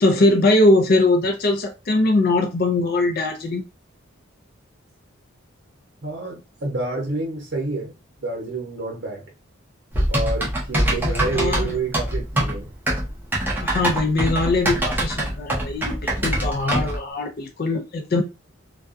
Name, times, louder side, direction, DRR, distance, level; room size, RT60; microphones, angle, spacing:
voice 1, 0.0-3.6 10.8-11.8 13.6-18.2, left 2 dB, 45° left, 0.4 m, -21 dB
voice 2, 6.0-7.9 8.2-9.2 10.1-12.7, right 3 dB, 55° right, 0.9 m, -28 dB
Typing, 9.9-17.0, right 1 dB, 10° right, 0.5 m, -23 dB
2.3 x 2.2 x 2.5 m
head